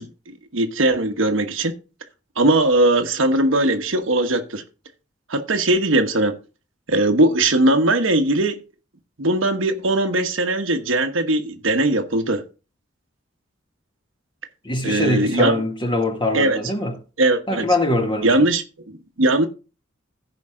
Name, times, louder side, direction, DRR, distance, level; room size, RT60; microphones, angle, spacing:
voice 1, 0.0-1.7 2.4-4.6 5.3-6.4 6.9-8.6 9.2-12.4 14.8-15.5 16.3-16.6 17.2-17.6 18.2-19.5, right 2 dB, 70° right, 1.3 m, -20 dB
voice 2, 14.6-17.0 17.5-18.5, left 1 dB, 25° left, 2.0 m, -22 dB
15.5 x 5.2 x 3.7 m
head